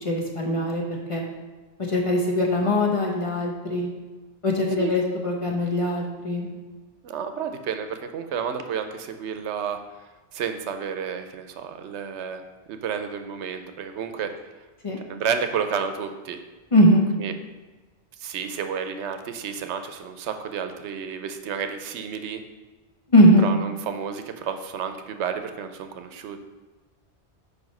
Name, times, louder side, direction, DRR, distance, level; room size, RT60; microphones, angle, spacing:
voice 1, 0.0-1.2 1.9-3.9 4.4-6.5 14.8-15.0 16.7-17.1 23.1-23.6, left 1 dB, 30° left, 0 dB, 0.8 m, -21 dB
voice 2, 7.0-9.8 10.3-12.4 12.7-14.3 15.1-16.4 17.2-17.3 18.2-22.4 23.4-26.4, right 7 dB, 85° right, 8 dB, 0.9 m, -31 dB
4.9 x 4.7 x 5.3 m, 1.2 s
omnidirectional pair, 1.1 m